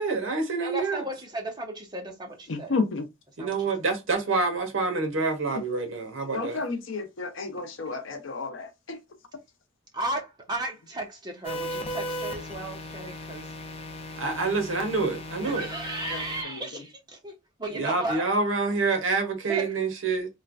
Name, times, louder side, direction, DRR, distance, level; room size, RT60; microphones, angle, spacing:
voice 1, 0.0-1.0 3.4-6.6 14.2-15.7 17.7-20.3, right 3 dB, 70° right, 0.8 m, -27 dB
voice 2, 0.6-2.7 3.4-3.7 7.6-7.7 9.9-13.5 15.4-18.3 19.5-19.7, right 2 dB, 20° right, 0.8 m, -35 dB
voice 3, 2.5-3.1 6.3-9.0 16.1-16.2 16.5-16.6, left 4 dB, 70° left, 0.7 m, -31 dB
sound 1, 11.4-16.4, left 1 dB, 30° left, 0.4 m, -37 dB
3.1 x 2.2 x 2.4 m
head